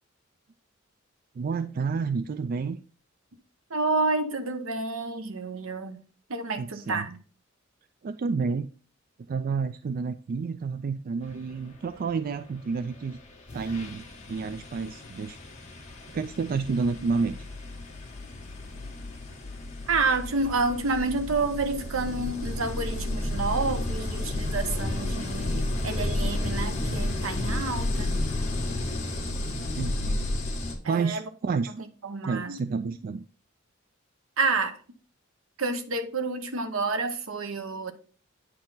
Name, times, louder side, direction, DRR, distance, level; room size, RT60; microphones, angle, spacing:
voice 1, 1.4-2.8 6.6-7.1 8.0-8.7 9.3-13.2 13.5-15.4 16.1-17.4 29.8-30.3 30.9-31.8 32.2-33.2, right 4 dB, 45° right, 0.3 m, -30 dB
voice 2, 3.7-6.0 6.3-7.2 19.9-28.2 30.8-31.2 32.0-32.6 34.4-34.8 35.6-37.9, right 3 dB, 75° right, 0.9 m, -29 dB
sound 1, 12.9-13.1 13.5-30.7, left 1 dB, 35° left, 1.7 m, -32 dB
9.1 x 4.4 x 3.9 m
head